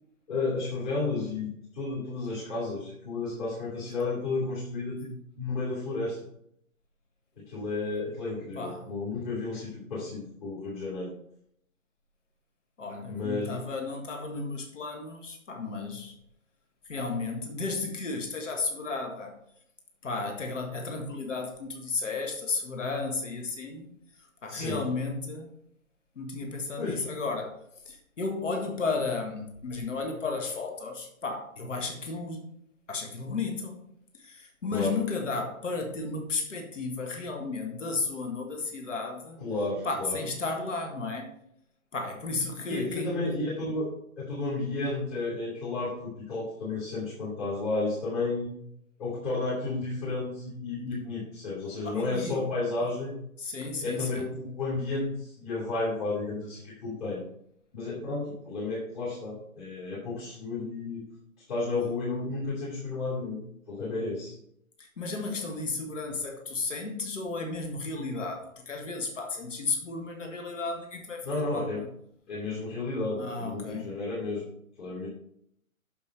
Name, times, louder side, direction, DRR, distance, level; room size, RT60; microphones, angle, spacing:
voice 1, 0.3-5.0 5.4-6.2 7.4-11.1 13.1-13.6 24.5-24.8 26.8-27.0 34.7-35.0 39.4-40.2 42.6-43.9 44.2-48.5 49.0-53.1 53.8-57.2 57.7-61.0 61.5-63.4 63.7-64.3 71.2-71.8 72.3-74.5 74.8-75.1, left 3 dB, 30° left, -8 dB, 2.9 m, -32 dB
voice 2, 8.5-8.9 12.8-16.1 16.8-19.4 20.0-23.9 24.4-25.5 26.1-27.6 27.8-32.5 32.9-33.8 34.1-39.4 39.8-41.3 41.9-43.2 51.8-52.5 53.4-54.3 64.8-71.9 73.2-73.9, left 3 dB, 60° left, 3 dB, 1.8 m, -33 dB
7.1 x 6.6 x 4.4 m, 0.71 s
figure-of-eight pair, 130°, 42 cm